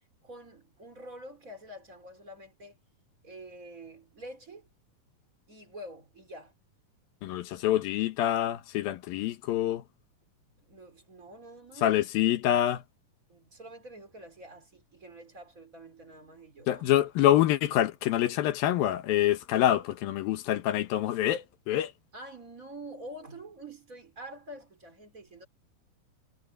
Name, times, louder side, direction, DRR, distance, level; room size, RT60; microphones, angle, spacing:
voice 1, 0.2-2.8 3.2-4.7 5.5-6.5 10.6-12.0 13.3-16.8 22.1-25.5, right 1 dB, 20° right, 4.4 m, -47 dB
voice 2, 7.2-9.8 11.8-12.8 16.7-21.9, left 12 dB, 75° left, 2.9 m, -26 dB
omnidirectional pair, 4.2 m